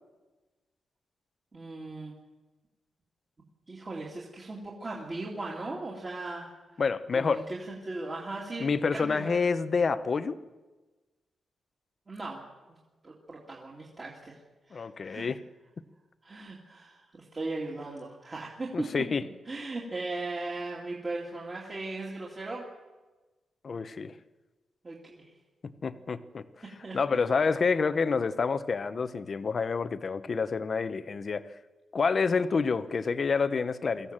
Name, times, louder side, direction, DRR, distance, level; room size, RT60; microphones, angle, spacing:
voice 1, 1.5-2.1 3.7-6.5 7.1-9.4 12.1-12.4 13.0-14.3 14.7-15.3 16.2-19.1 19.5-22.7 24.8-25.3 26.8-27.2 32.2-32.4, right 2 dB, 25° right, -4 dB, 2.4 m, -38 dB
voice 2, 6.8-7.4 8.6-10.4 14.7-15.4 18.7-19.2 23.6-24.2 25.8-26.4 26.9-31.4 31.9-34.1, left 5 dB, 35° left, 12 dB, 0.8 m, -28 dB
23.5 x 15.0 x 7.4 m, 1.2 s
wide cardioid pair, 175°, 0 cm